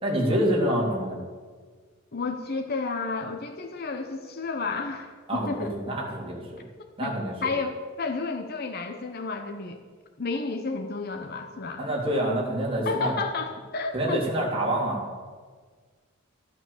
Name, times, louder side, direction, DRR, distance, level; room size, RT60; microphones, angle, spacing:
voice 1, 0.0-1.2 5.3-6.6 7.0-7.5 11.8-13.1 13.9-15.0, right 1 dB, 25° right, -3 dB, 3.3 m, -27 dB
voice 2, 2.1-5.7 7.0-7.1 7.4-9.8 10.2-11.8 12.8-14.2, left 4 dB, 45° left, 5 dB, 0.8 m, -31 dB
14.5 x 8.6 x 7.2 m, 1.5 s
head